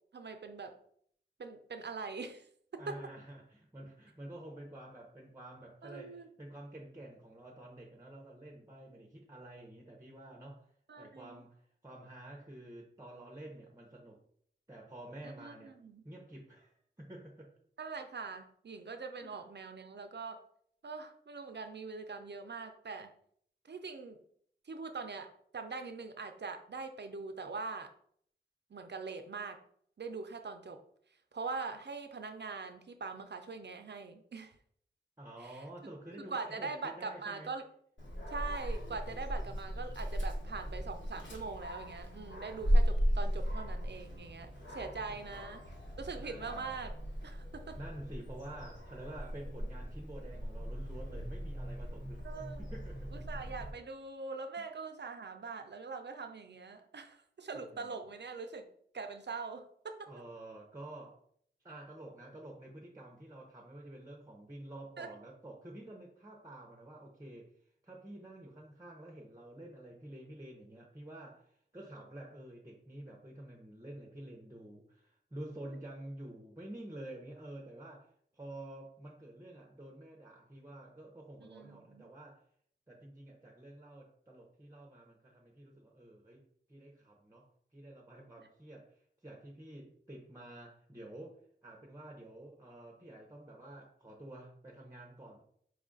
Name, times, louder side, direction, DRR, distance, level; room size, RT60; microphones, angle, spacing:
voice 1, 0.1-0.7 1.4-2.5 2.7-3.0 5.8-6.3 10.9-11.4 15.4-16.0 17.8-20.4 20.8-23.1 23.6-24.2 24.7-27.9 28.7-29.6 30.0-30.8 31.3-34.5 35.4-35.6 36.2-37.6 38.3-45.6 46.0-46.9 47.2-47.8 52.2-52.6 53.1-58.7 58.9-60.1 65.0-65.1 81.4-82.1, right 4 dB, 60° right, 6 dB, 0.5 m, -42 dB
voice 2, 2.8-10.7 11.0-14.2 14.7-15.8 16.0-17.5 19.2-19.4 35.2-37.5 44.5-45.4 46.2-46.8 47.8-52.2 52.6-53.2 54.6-54.7 57.5-58.0 60.1-61.2 61.6-67.5 67.8-82.4 82.9-86.4 86.7-95.4, right 1 dB, 15° right, 0 dB, 0.7 m, -49 dB
Dog, 38.0-53.7, equal, 70° left, 1.2 m, -36 dB
4.8 x 2.4 x 3.8 m, 0.64 s
wide cardioid pair, 60°, 20 cm